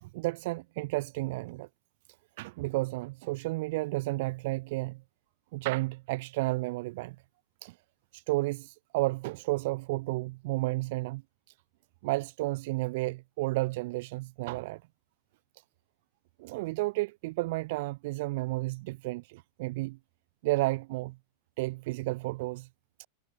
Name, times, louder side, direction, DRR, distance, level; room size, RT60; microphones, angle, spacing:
voice 1, 0.0-1.7 2.4-5.0 5.5-7.2 7.6-7.7 8.1-11.2 12.0-14.8 16.4-20.0 20.4-21.2 21.6-22.7 23.0-23.1, right 21 dB, 60° right, 2.6 m, -32 dB
supercardioid pair, 140°, 0 cm